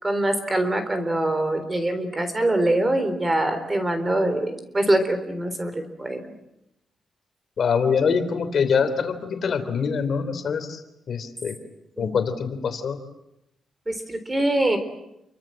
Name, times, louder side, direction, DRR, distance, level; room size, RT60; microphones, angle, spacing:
voice 1, 0.0-6.3 12.0-12.2 13.9-14.8, right 1 dB, 20° right, 9 dB, 3.8 m, -24 dB
voice 2, 7.6-10.8 11.1-11.5 12.0-13.0, left 6 dB, 55° left, 9 dB, 3.2 m, -24 dB
29.5 x 24.0 x 7.6 m, 0.86 s
wide cardioid pair, 135°, 0 cm